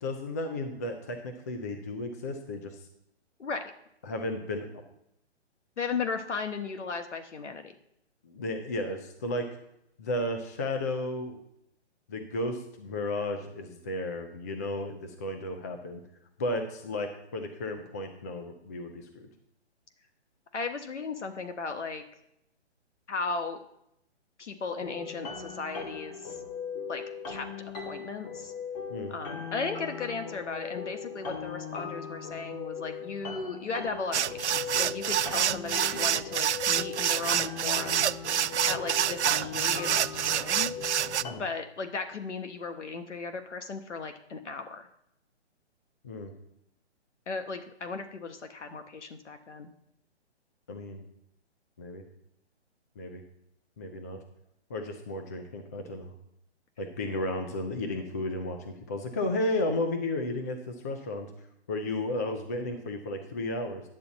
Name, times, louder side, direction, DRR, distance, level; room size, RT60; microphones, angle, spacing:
voice 1, 0.0-2.9 4.0-4.7 8.2-9.5 10.0-11.3 12.1-16.0 16.4-19.3 28.9-29.1 41.2-41.4 46.0-46.3 50.7-51.0 51.8-52.0 53.0-53.2 53.8-54.2 54.7-56.1 56.8-61.3 61.7-63.8, left 1 dB, 15° left, 5 dB, 0.4 m, -33 dB
voice 2, 5.8-7.7 20.5-22.0 23.1-23.6 24.4-26.4 26.9-27.5 27.9-28.5 29.1-38.1 38.7-40.7 41.4-44.9 47.3-49.7, left 4 dB, 85° left, 7 dB, 1.3 m, -36 dB
sound 1, 24.8-41.3, left 6 dB, 40° left, 2.4 m, -39 dB
sound 2, 34.1-41.2, right 10 dB, 75° right, 0.5 m, -27 dB
10.5 x 8.2 x 4.1 m, 0.80 s
hypercardioid pair, 150°, 35 cm